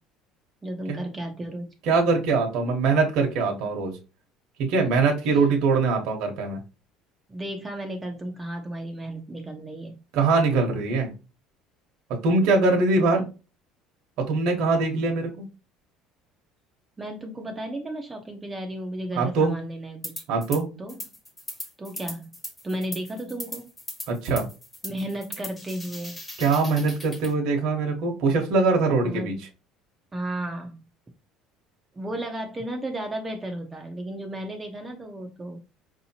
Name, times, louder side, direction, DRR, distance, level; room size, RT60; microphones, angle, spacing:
voice 1, 0.6-1.7 4.8-4.9 7.3-10.0 13.1-13.2 17.0-20.2 20.8-21.0 21.8-22.3 22.6-23.7 24.8-26.2 29.0-29.3 30.1-30.8 31.9-35.6, right 1 dB, 15° right, 2 dB, 0.6 m, -34 dB
voice 2, 1.8-3.9 4.6-6.6 10.1-11.1 12.2-13.2 14.3-15.4 19.2-19.6 20.3-20.7 24.1-24.5 26.4-29.3, right 3 dB, 65° right, 1 dB, 1.1 m, -22 dB
sound 1, 20.0-20.6 20.9-27.3, left 1 dB, 10° left, 1.1 m, -39 dB
4.8 x 2.8 x 2.8 m, 0.31 s
cardioid pair, 140°, 0 cm